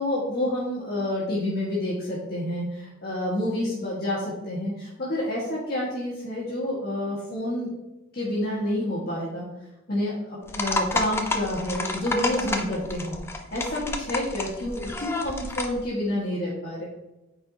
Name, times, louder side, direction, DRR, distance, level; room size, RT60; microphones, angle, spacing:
voice 1, 0.0-7.7 8.1-9.4 9.9-13.2 13.5-16.9, left 1 dB, 50° left, -7 dB, 1.5 m, -28 dB
sound 1, 10.5-15.8, left 2 dB, 10° left, 0.4 m, -30 dB
8.7 x 4.4 x 2.7 m, 1.0 s
head